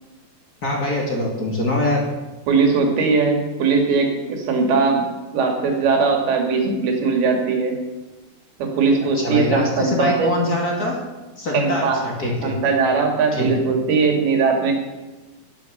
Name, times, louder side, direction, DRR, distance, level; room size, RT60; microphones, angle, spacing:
voice 1, 0.6-2.1 9.1-11.0 11.4-12.5 13.3-13.5, left 1 dB, 30° left, -2 dB, 2.4 m, -23 dB
voice 2, 2.5-7.8 8.6-10.3 11.5-12.0 12.4-14.7, right 4 dB, 80° right, 2 dB, 4.1 m, -20 dB
12.0 x 11.0 x 6.7 m, 1.2 s
omnidirectional pair, 4.4 m